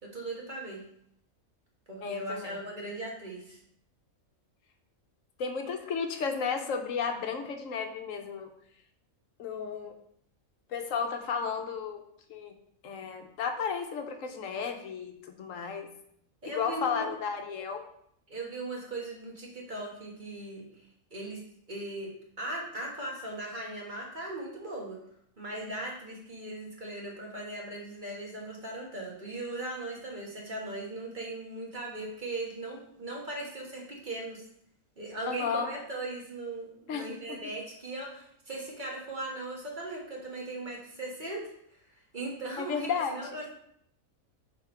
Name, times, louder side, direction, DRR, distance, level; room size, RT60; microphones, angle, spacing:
voice 1, 0.0-0.8 1.9-3.6 16.4-17.1 18.3-20.6 21.1-21.4 21.7-22.1 22.4-25.0 25.4-34.4 35.0-41.5 42.1-43.5, right 2 dB, 35° right, -2 dB, 1.5 m, -38 dB
voice 2, 2.0-2.6 5.4-8.5 9.4-9.9 10.7-12.0 12.3-12.5 12.8-15.1 15.4-15.9 16.5-17.8 35.3-35.7 36.9-37.4 42.6-43.2, left 6 dB, 70° left, 5 dB, 1.2 m, -33 dB
5.9 x 4.4 x 4.3 m, 0.70 s
omnidirectional pair, 1.5 m